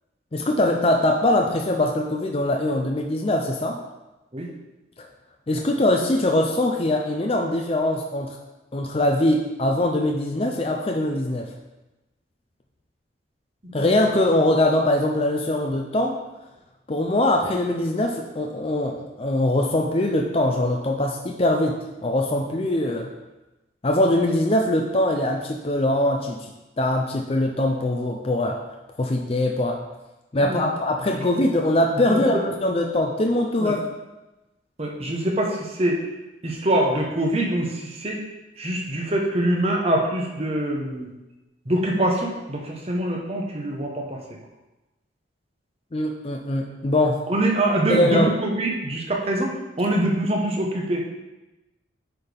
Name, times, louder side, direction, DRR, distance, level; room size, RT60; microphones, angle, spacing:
voice 1, 0.3-3.8 5.0-5.1 5.5-8.4 8.7-11.5 13.7-16.2 16.9-23.1 23.8-26.5 26.8-28.6 29.0-29.8 30.3-33.8 45.9-47.2 47.9-48.3, left 1 dB, 30° left, 2 dB, 0.5 m, -22 dB
voice 2, 31.9-32.4 33.6-33.8 34.8-36.0 36.4-38.2 38.6-41.1 41.7-44.2 47.3-51.0, right 1 dB, 30° right, 0 dB, 1.0 m, -24 dB
9.6 x 4.2 x 3.4 m, 1.0 s
head